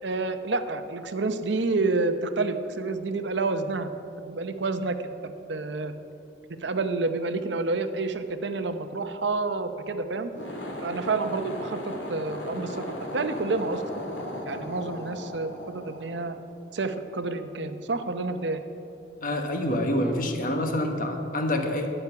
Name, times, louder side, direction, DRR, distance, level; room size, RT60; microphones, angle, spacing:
voice 1, 0.0-3.9 4.2-5.1 5.5-5.9 6.6-10.3 10.8-13.8 14.5-16.4 16.7-18.6, right 3 dB, 70° right, 9 dB, 0.8 m, -29 dB
sound 1, 10.2-16.8, left 1 dB, 75° left, 2.3 m, -37 dB
voice 2, 19.2-21.9, left 1 dB, 45° left, 4 dB, 1.3 m, -27 dB
13.0 x 10.0 x 6.0 m, 2.7 s
head